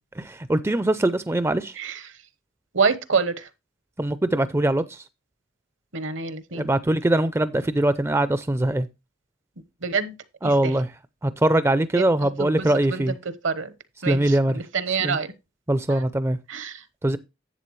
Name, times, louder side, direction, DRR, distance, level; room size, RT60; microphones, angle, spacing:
voice 1, 0.2-1.7 4.0-5.0 6.5-8.9 10.4-10.9 11.2-13.1 14.1-14.5 15.0-15.2 15.7-16.4 17.0-17.2, right 1 dB, 15° right, 0.4 m, -22 dB
voice 2, 1.8-2.1 2.7-3.5 5.9-6.7 9.8-10.1 10.4-10.8 11.9-13.7 14.0-15.3 15.9-16.1 16.5-16.8, right 5 dB, 70° right, 1.0 m, -27 dB
11.0 x 8.0 x 3.1 m
head